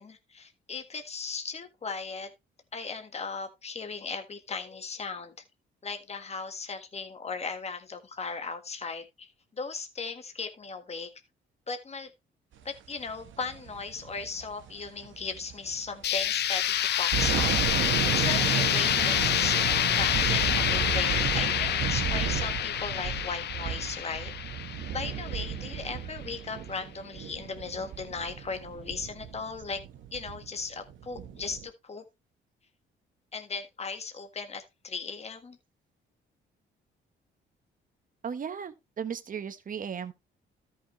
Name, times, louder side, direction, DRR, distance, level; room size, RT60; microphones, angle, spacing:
voice 1, 0.0-2.3 2.7-5.3 5.8-11.1 11.7-12.1 12.6-17.7 18.1-19.6 19.9-24.3 24.9-29.8 30.1-32.0 33.3-35.6, left 4 dB, 30° left, 1.6 m, -37 dB
sound 1, 13.1-15.9 16.2-16.3 16.8-31.6, right 9 dB, 75° right, 1.4 m, -33 dB
sound 2, 16.0-25.8, left 11 dB, 60° left, 0.5 m, -27 dB
voice 2, 38.2-40.1, right 7 dB, 45° right, 1.1 m, -36 dB
13.0 x 6.0 x 3.2 m
cardioid pair, 90°, 20 cm